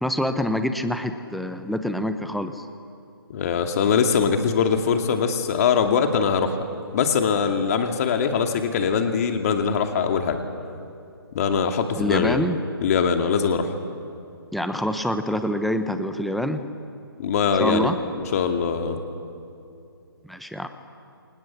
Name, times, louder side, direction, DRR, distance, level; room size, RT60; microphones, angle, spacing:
voice 1, 0.0-2.7 12.0-12.6 14.5-16.6 17.6-18.0 20.2-20.7, equal, ahead, 8 dB, 1.0 m, -26 dB
voice 2, 3.3-6.6 6.9-10.4 11.3-12.4 12.8-13.7 17.2-17.9 18.3-19.0, left 6 dB, 40° left, 5 dB, 2.5 m, -22 dB
29.0 x 28.0 x 7.3 m, 2.6 s
figure-of-eight pair, 145°, 13 cm